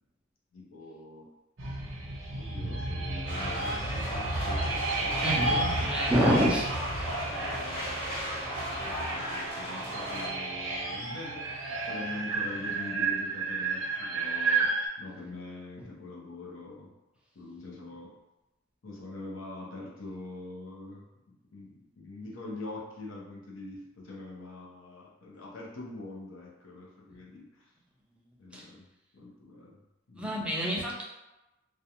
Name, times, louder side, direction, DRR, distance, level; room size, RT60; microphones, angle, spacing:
voice 1, 0.5-1.3 2.3-5.7 7.1-8.0 8.8-16.9 17.3-18.1 18.8-27.7 28.4-28.9 29.1-29.8 30.1-30.4, left 2 dB, 85° left, -3 dB, 0.7 m, -44 dB
sound 1, 1.6-14.9, right 3 dB, 80° right, 0.6 m, -32 dB
sound 2, 3.3-10.3, right 1 dB, 30° left, 0.9 m, -35 dB
voice 2, 5.2-6.7 28.5-28.6 30.2-31.0, equal, 5° right, -4 dB, 0.3 m, -27 dB
2.4 x 2.1 x 2.8 m, 0.98 s
head